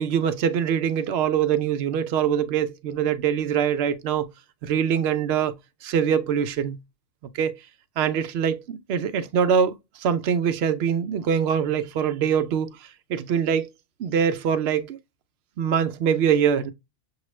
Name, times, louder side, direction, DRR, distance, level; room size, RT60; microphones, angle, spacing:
voice 1, 0.0-4.3 4.6-5.5 5.8-6.8 7.3-7.6 8.0-9.7 10.0-12.7 13.1-13.7 14.0-15.0 15.6-16.7, right 8 dB, 65° right, 0.8 m, -23 dB
6.9 x 2.3 x 3.1 m
omnidirectional pair, 1.2 m